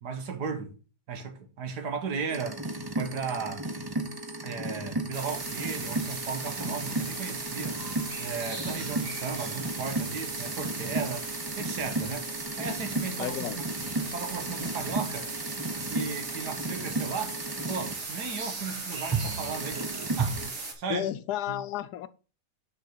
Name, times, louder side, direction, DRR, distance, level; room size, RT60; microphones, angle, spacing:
voice 1, 0.0-0.8 1.1-2.6 3.0-3.7 4.4-7.8 8.2-11.3 11.6-12.3 12.6-13.4 14.1-15.3 15.9-17.4 17.7-19.9 20.2-21.1 21.5-21.6, right 5 dB, 75° right, 1.9 m, -35 dB
sound 1, 2.3-17.9 19.1-20.5, right 2 dB, 25° right, 0.5 m, -34 dB
sound 2, 5.1-20.7, right 3 dB, 50° right, 2.0 m, -37 dB
voice 2, 13.2-13.6 20.9-22.1, left 12 dB, 75° left, 1.1 m, -32 dB
6.3 x 5.0 x 5.7 m
omnidirectional pair, 1.7 m